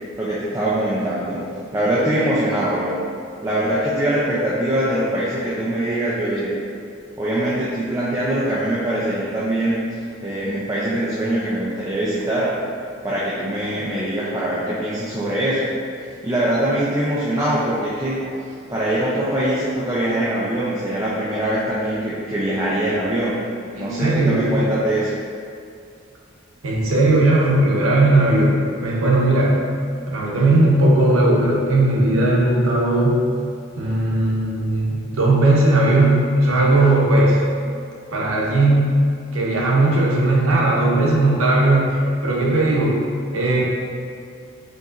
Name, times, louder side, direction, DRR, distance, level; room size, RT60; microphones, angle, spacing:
voice 1, 0.2-1.4 1.7-3.0 3.4-6.5 7.2-9.8 10.2-12.5 13.0-15.7 16.2-18.4 18.7-23.3 23.8-25.1, right 1 dB, 15° right, -8 dB, 0.4 m, -22 dB
voice 2, 23.8-24.5 26.6-29.6 30.1-33.2 33.8-37.4 38.1-39.0 39.3-43.0 43.3-43.6, right 2 dB, 85° right, -3 dB, 0.8 m, -17 dB
5.2 x 2.9 x 2.5 m, 2.4 s
head